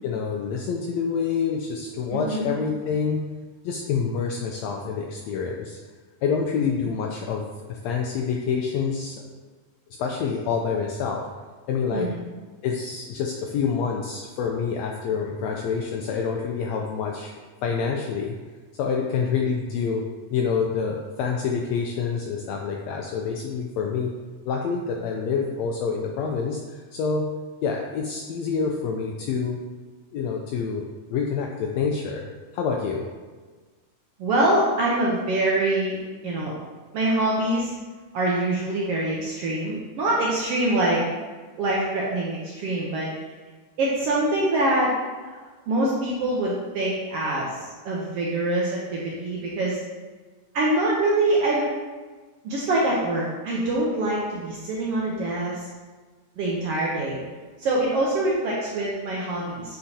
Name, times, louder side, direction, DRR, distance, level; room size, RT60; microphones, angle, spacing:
voice 1, 0.0-3.2 3.6-5.8 6.2-7.4 7.7-9.2 10.0-11.2 11.7-12.1 12.6-17.3 17.6-18.4 18.8-20.0 20.3-24.1 24.5-27.3 27.6-29.6 30.1-30.8 31.1-32.2 32.5-33.1, left 6 dB, 80° left, 0 dB, 1.5 m, -27 dB
voice 2, 2.1-2.5 11.9-12.1 34.2-36.0 36.2-36.5 36.9-37.7 38.1-41.0 41.6-43.1 43.8-44.9 45.2-45.3 45.7-49.8 50.5-51.7 52.4-55.7 56.4-57.2 57.6-59.8, right 1 dB, 75° right, -4 dB, 1.4 m, -24 dB
8.5 x 4.4 x 2.7 m, 1.4 s
omnidirectional pair, 3.5 m